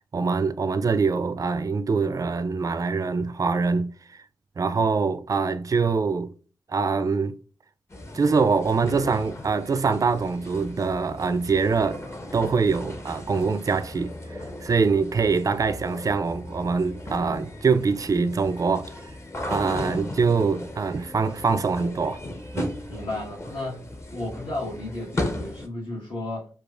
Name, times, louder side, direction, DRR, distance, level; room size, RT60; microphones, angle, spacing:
voice 1, 0.1-3.9 4.6-6.3 6.7-7.4 8.1-12.0 12.3-14.1 14.6-18.9 19.5-22.2 22.5-22.8, right 4 dB, 40° right, 0.4 m, -24 dB
sound 1, 7.9-25.7, left 1 dB, 30° left, 0.9 m, -37 dB
voice 2, 22.9-23.9 24.1-26.5, left 2 dB, 65° left, 1.5 m, -33 dB
4.7 x 2.3 x 2.4 m
cardioid pair, 50°, 9 cm